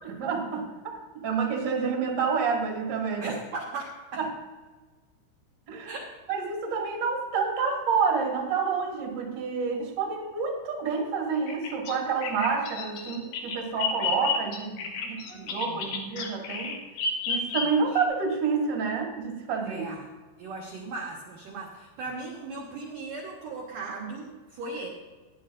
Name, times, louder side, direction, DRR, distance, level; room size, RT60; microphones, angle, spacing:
voice 1, 0.0-3.4 4.2-4.3 5.7-5.9 6.3-14.8 15.3-16.8 17.3-19.9, right 5 dB, 40° right, -1 dB, 1.5 m, -28 dB
voice 2, 3.2-4.2 5.8-6.1 15.0-15.9 17.6-17.9 19.7-20.1 20.4-24.9, right 3 dB, 70° right, -2 dB, 2.1 m, -38 dB
Bird vocalization bird call bird song, 11.5-18.0, left 4 dB, 70° left, 2.2 m, -32 dB
17.0 x 11.0 x 2.6 m, 1.3 s
omnidirectional pair, 5.8 m